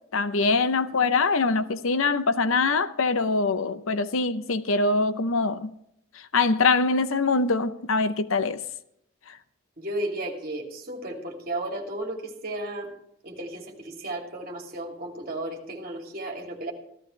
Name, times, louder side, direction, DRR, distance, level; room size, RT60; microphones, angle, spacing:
voice 1, 0.1-5.7 6.3-8.6, left 3 dB, 75° left, 0.8 m, -23 dB
voice 2, 9.8-12.9 13.2-16.7, right 1 dB, 45° right, 2.9 m, -34 dB
16.0 x 14.0 x 3.3 m
head